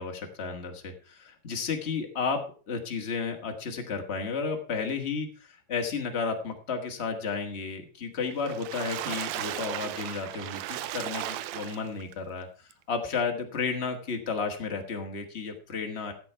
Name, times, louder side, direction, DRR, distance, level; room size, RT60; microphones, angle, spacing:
voice 1, 0.0-16.1, left 5 dB, 35° left, 3 dB, 1.1 m, -33 dB
Water / Splash splatter, 8.3-12.1 12.7-12.8 13.1-13.2, right 13 dB, 80° right, 1.6 m, -35 dB
13.5 x 8.3 x 4.5 m, 0.39 s
omnidirectional pair, 3.7 m